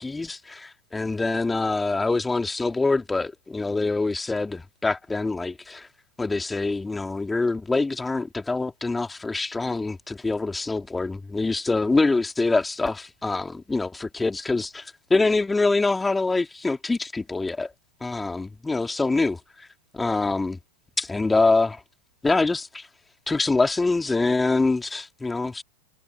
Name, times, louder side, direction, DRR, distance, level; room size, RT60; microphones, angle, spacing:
voice 1, 0.0-5.9 6.2-17.7 18.0-19.7 19.9-20.6 21.0-21.8 22.2-22.9 23.3-25.6, left 3 dB, 10° left, 3.0 m, -25 dB
figure-of-eight pair, 90°, 0 cm